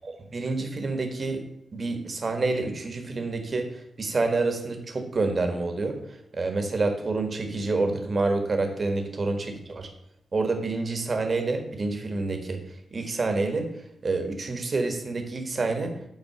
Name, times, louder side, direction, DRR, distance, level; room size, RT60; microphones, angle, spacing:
voice 1, 0.0-1.4 1.7-3.7 4.0-6.0 6.4-9.4 9.7-9.9 10.3-12.6 12.9-13.7 14.0-15.9, right 3 dB, 35° right, 5 dB, 1.4 m, -27 dB
8.5 x 4.2 x 6.6 m, 0.78 s
wide cardioid pair, 140°, 0 cm